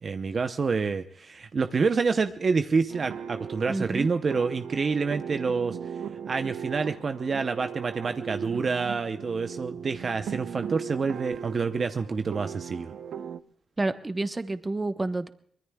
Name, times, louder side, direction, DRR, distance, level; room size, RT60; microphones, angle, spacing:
voice 1, 0.0-5.8 6.3-12.9, right 4 dB, 45° right, 8 dB, 0.7 m, -27 dB
sound 1, 2.9-13.4, right 8 dB, 80° right, 0.6 m, -38 dB
voice 2, 3.7-4.1 13.8-15.3, right 2 dB, 20° right, 10 dB, 1.0 m, -29 dB
24.0 x 20.5 x 2.3 m, 0.63 s
cardioid pair, 90°, 0 cm